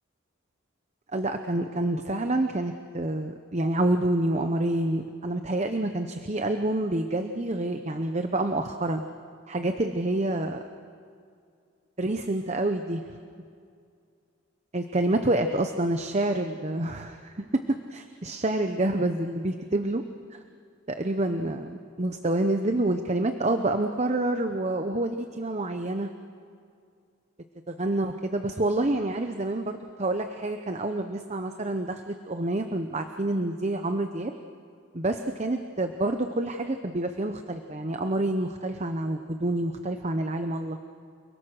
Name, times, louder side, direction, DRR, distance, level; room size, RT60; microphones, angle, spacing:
voice 1, 1.1-9.0 9.5-10.6 12.0-13.0 14.7-17.3 17.7-20.0 20.3-20.4 20.9-26.1 27.7-34.3 34.9-40.8, right 1 dB, 35° right, 7 dB, 0.8 m, -28 dB
29.5 x 21.5 x 6.5 m, 2.3 s
head